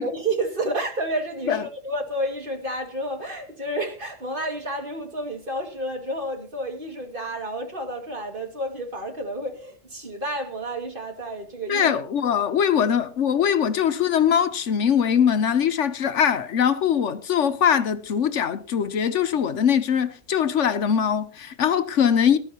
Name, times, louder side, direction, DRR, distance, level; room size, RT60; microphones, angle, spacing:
voice 1, 0.0-11.9, right 1 dB, 40° right, 2.4 m, -30 dB
voice 2, 11.7-22.4, left 8 dB, 70° left, 1.1 m, -22 dB
19.5 x 12.5 x 2.9 m
omnidirectional pair, 1.3 m